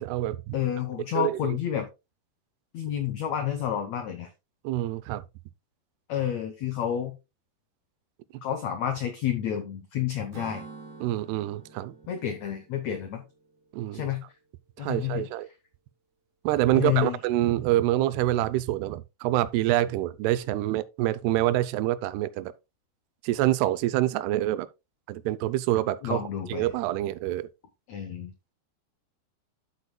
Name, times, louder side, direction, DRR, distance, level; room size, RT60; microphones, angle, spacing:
voice 1, 0.0-0.6 1.1-1.6 4.6-5.2 11.0-11.9 13.7-14.1 14.8-15.5 16.4-22.5 23.2-24.7 25.1-26.2 26.5-27.5, right 14 dB, 90° right, 2.7 m, -26 dB
voice 2, 0.5-1.9 2.7-4.3 6.1-7.1 8.4-10.6 12.1-13.2 13.9-14.2 14.8-15.3 16.7-17.2 26.0-26.7 27.9-28.5, left 10 dB, 90° left, 1.5 m, -30 dB
Acoustic guitar / Strum, 10.3-13.9, right 3 dB, 45° right, 1.3 m, -47 dB
10.0 x 8.1 x 2.2 m
omnidirectional pair, 4.5 m